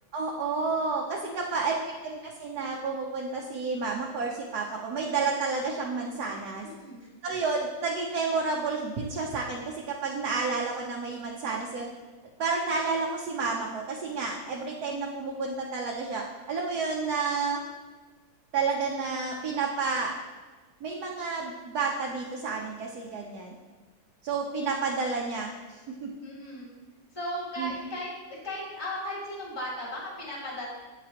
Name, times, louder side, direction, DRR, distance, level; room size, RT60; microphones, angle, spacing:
voice 1, 0.1-6.6 7.2-11.9 12.4-17.6 18.5-20.1 20.8-23.5 24.2-26.1 27.6-27.7, right 4 dB, 65° right, -1 dB, 1.1 m, -30 dB
voice 2, 1.2-1.6 6.6-7.1 26.2-26.7 27.1-30.7, left 1 dB, 15° left, -8 dB, 1.8 m, -36 dB
8.8 x 4.9 x 2.9 m, 1.3 s
omnidirectional pair, 2.0 m